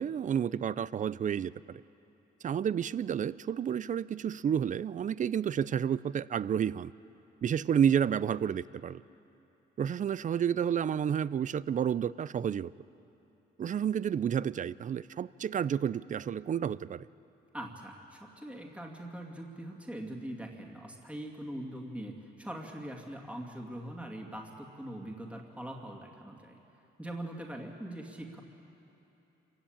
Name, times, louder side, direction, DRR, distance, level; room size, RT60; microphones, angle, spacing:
voice 1, 0.0-1.8 2.4-6.9 7.4-9.0 9.8-12.7 13.6-17.1, right 8 dB, 40° right, 19 dB, 0.5 m, -30 dB
voice 2, 17.5-26.6 27.0-28.4, right 1 dB, 5° right, 1 dB, 2.3 m, -42 dB
26.0 x 15.5 x 8.9 m, 2.9 s
cardioid pair, 90°, 20 cm